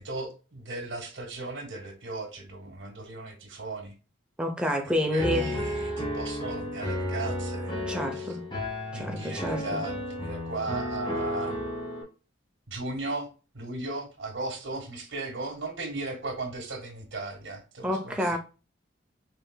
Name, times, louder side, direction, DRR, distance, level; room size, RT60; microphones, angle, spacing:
voice 1, 0.0-3.9 5.1-7.9 8.1-8.4 8.9-11.6 12.7-13.3 13.5-18.4, right 2 dB, 70° right, 1.5 m, -36 dB
voice 2, 4.4-5.5 7.9-8.4 8.9-9.8 17.8-18.4, equal, 5° right, 0.7 m, -28 dB
Piano, 5.2-12.0, left 1 dB, 20° left, 1.3 m, -33 dB
5.6 x 3.4 x 2.3 m
head